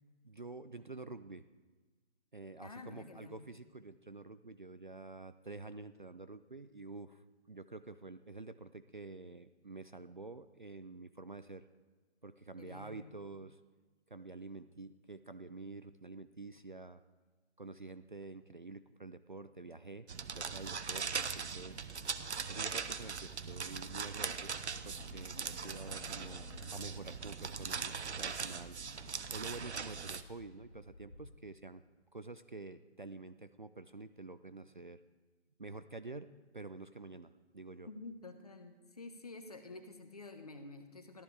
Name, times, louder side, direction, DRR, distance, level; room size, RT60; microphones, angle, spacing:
voice 1, 0.2-1.4 2.3-11.6 12.2-13.6 14.1-17.0 17.6-20.1 20.3-21.8 22.5-28.8 29.3-31.8 32.1-35.0 35.6-37.9, right 3 dB, 45° right, 12 dB, 0.4 m, -48 dB
voice 2, 2.6-3.5 12.6-13.1 37.9-41.2, left 3 dB, 35° left, 7 dB, 1.1 m, -49 dB
sound 1, 20.1-30.2, right 6 dB, 75° right, 0.9 m, -40 dB
Bus / Traffic noise roadway noise, 22.8-31.3, left 2 dB, 60° left, 2.2 m, -56 dB
15.0 x 12.5 x 4.7 m, 1.3 s
hypercardioid pair, 175°, 35 cm